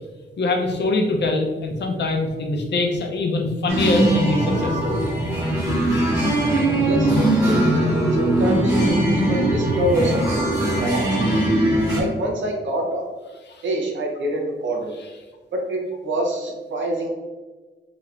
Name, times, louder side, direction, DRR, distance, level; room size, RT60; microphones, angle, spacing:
voice 1, 0.4-5.0, left 2 dB, 65° left, 2 dB, 0.6 m, -23 dB
sound 1, 3.7-12.0, right 1 dB, 15° right, 0.9 m, -20 dB
voice 2, 6.8-11.4 11.9-13.0 13.6-14.9 15.5-17.1, right 1 dB, 75° right, 1 dB, 0.7 m, -26 dB
3.2 x 2.9 x 2.4 m, 1.3 s
wide cardioid pair, 150°, 19 cm